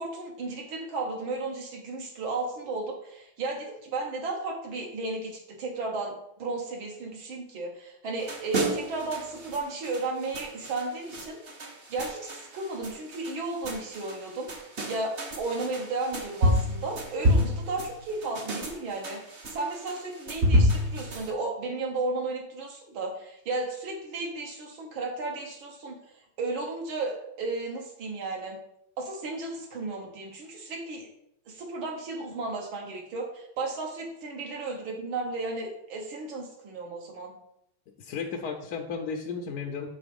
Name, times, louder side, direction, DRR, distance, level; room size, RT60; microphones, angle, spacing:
voice 1, 0.0-11.4 11.9-14.5 14.9-26.0 26.4-28.6 29.0-31.1 31.5-37.3, right 3 dB, 70° right, 0 dB, 2.0 m, -34 dB
sound 1, 8.2-21.3, equal, 45° right, 0.8 m, -29 dB
voice 2, 38.0-39.9, left 5 dB, 70° left, 3 dB, 1.0 m, -34 dB
7.1 x 3.8 x 5.2 m, 0.79 s
omnidirectional pair, 2.3 m